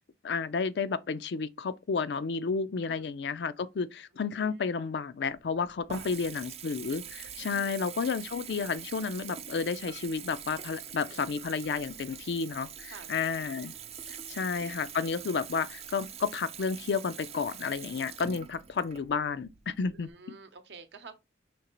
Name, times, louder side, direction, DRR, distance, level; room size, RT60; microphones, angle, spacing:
voice 1, 0.2-13.7 14.1-20.1, left 5 dB, 70° left, 0.4 m, -31 dB
voice 2, 4.1-4.7 5.9-6.1 7.5-7.8 11.0-11.3 12.9-13.1 14.3-14.7 19.9-21.2, right 4 dB, 70° right, 0.8 m, -51 dB
Water tap faucet / Bathtub (filling or washing) / Trickle dribble, 5.3-20.1, right 8 dB, 35° right, 0.4 m, -44 dB
5.1 x 3.3 x 3.0 m
head